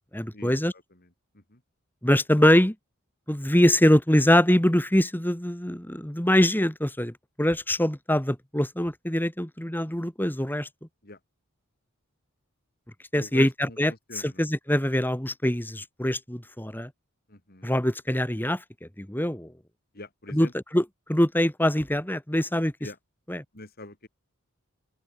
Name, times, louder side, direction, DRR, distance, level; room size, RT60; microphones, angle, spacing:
voice 1, 0.1-0.7 2.0-2.8 3.3-10.7 13.1-16.9 17.6-19.5 20.3-20.5 20.7-22.7 23.3-23.4, left 1 dB, 10° left, 2.2 m, -23 dB
voice 2, 13.2-13.8 14.1-14.4 17.3-17.7 19.9-20.5 22.8-23.0 23.5-24.1, left 2 dB, 45° left, 3.6 m, -43 dB
open air
head